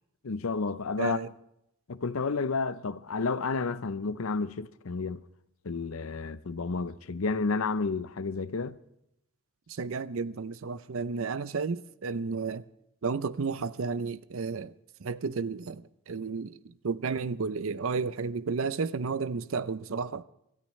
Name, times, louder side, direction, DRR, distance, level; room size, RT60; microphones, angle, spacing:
voice 1, 0.2-1.2 1.9-5.2 5.6-8.7, left 4 dB, 70° left, 0.6 m, -31 dB
voice 2, 1.0-1.3 9.7-12.6 13.0-14.7 15.0-20.2, right 5 dB, 65° right, 0.5 m, -32 dB
26.0 x 13.5 x 3.2 m
head